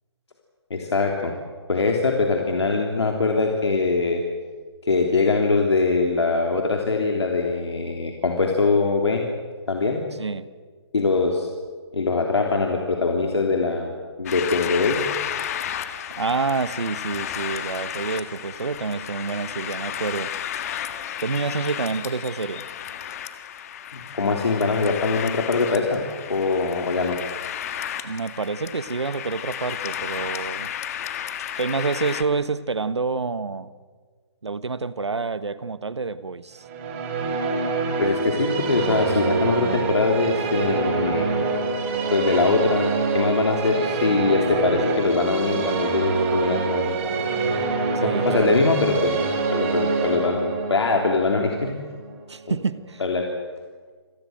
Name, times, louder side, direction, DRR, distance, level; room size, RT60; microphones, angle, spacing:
voice 1, 0.7-1.3 1.7-4.2 4.8-9.2 9.7-10.0 10.9-11.5 11.9-13.9 14.2-15.1 23.9-26.0 26.3-27.2 38.0-41.4 42.1-47.0 48.0-49.2 49.5-51.7 53.0-53.3, left 3 dB, 75° left, 2 dB, 3.3 m, -22 dB
sound 1, 14.2-32.2, left 10 dB, 35° left, 1.6 m, -33 dB
voice 2, 16.2-20.3 21.2-22.6 28.0-30.7 31.6-33.7 34.4-36.6 47.9-48.6 52.3-53.0, right 4 dB, 80° right, 15 dB, 1.4 m, -28 dB
sound 2, 36.6-52.7, right 4 dB, 30° right, 4.7 m, -26 dB
27.5 x 19.0 x 7.9 m, 1.5 s
figure-of-eight pair, 150°, 14 cm